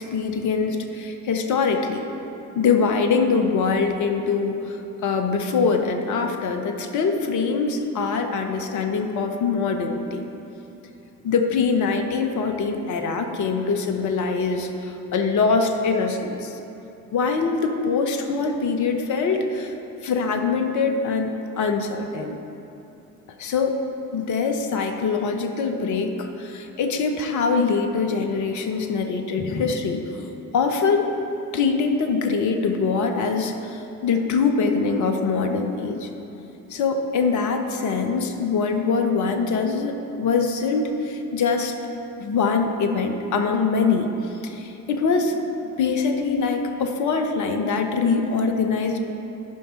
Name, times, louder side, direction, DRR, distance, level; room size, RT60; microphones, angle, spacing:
voice 1, 0.0-2.0 2.6-10.2 11.2-16.6 17.1-19.7 20.0-22.4 23.4-23.8 24.1-31.1 31.5-36.1 36.7-41.8 42.2-45.4 45.8-49.0, left 4 dB, 40° left, 5 dB, 0.9 m, -23 dB
14.0 x 5.5 x 4.3 m, 2.9 s
figure-of-eight pair, 45°, 45 cm